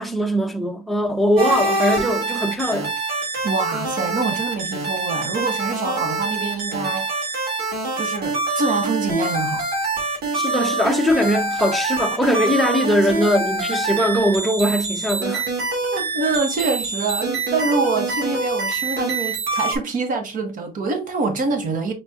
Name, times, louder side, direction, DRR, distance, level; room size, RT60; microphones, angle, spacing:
voice 1, 0.0-2.9 10.3-15.4, equal, ahead, 0.8 m, -21 dB
sound 1, 1.4-19.8, right 3 dB, 75° right, 2.6 m, -25 dB
voice 2, 3.4-7.1 7.9-9.6 15.9-21.9, right 3 dB, 50° right, 1.5 m, -25 dB
4.9 x 4.3 x 2.5 m
cardioid pair, 110°, 17 cm